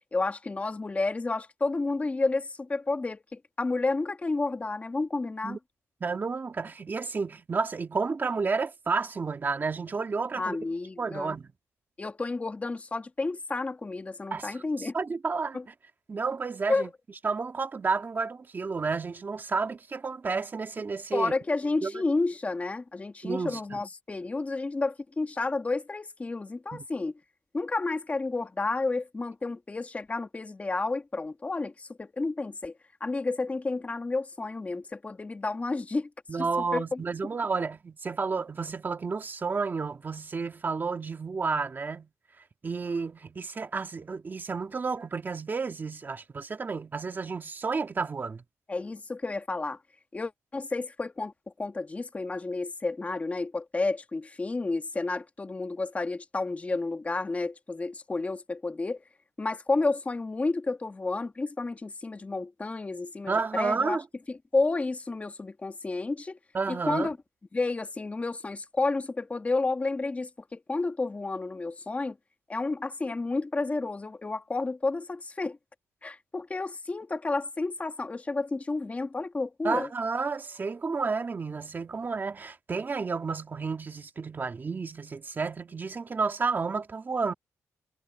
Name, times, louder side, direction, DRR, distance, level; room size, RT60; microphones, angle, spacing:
voice 1, 0.1-5.6 10.3-11.4 12.0-15.0 15.5-15.6 16.7-16.9 21.1-27.1 27.5-32.7 33.0-36.1 36.4-36.5 36.7-37.0 48.7-49.8 50.1-51.3 51.6-59.0 59.4-64.0 64.3-66.4 66.7-67.2 67.5-72.2 72.5-75.6 76.0-79.9, left 3 dB, 25° left, 1.5 m, -31 dB
voice 2, 6.0-10.6 11.0-11.5 14.3-15.7 16.1-16.9 17.2-21.3 21.8-21.9 23.2-23.8 26.7-26.8 36.3-42.1 42.6-48.4 63.3-64.0 66.5-67.1 79.6-87.3, right 4 dB, 35° right, 2.1 m, -31 dB
cardioid pair, 105°, 6 cm